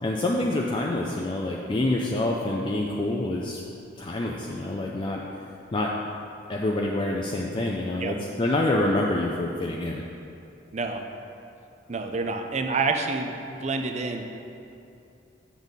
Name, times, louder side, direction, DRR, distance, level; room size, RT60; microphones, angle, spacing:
voice 1, 0.0-3.6 4.0-5.2 5.7-5.9 6.5-10.0, left 1 dB, 25° left, -1 dB, 0.4 m, -26 dB
voice 2, 10.7-11.0 11.9-14.3, right 3 dB, 35° right, 5 dB, 0.5 m, -28 dB
7.1 x 6.7 x 4.0 m, 2.7 s
head